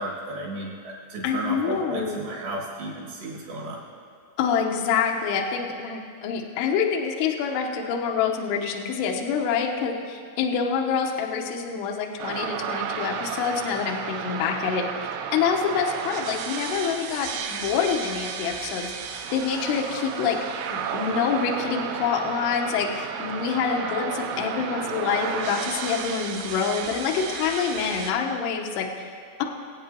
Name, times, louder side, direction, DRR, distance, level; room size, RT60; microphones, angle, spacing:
voice 1, 0.0-3.8, right 1 dB, 65° right, -4 dB, 3.5 m, -33 dB
voice 2, 1.2-2.2 4.4-14.8 15.3-20.4 20.7-28.9 29.4-29.5, left 6 dB, 80° left, 0 dB, 2.5 m, -26 dB
sound 1, 12.2-28.1, right 7 dB, 85° right, 3.0 m, -32 dB
24.0 x 8.7 x 2.8 m, 2.2 s
omnidirectional pair, 5.8 m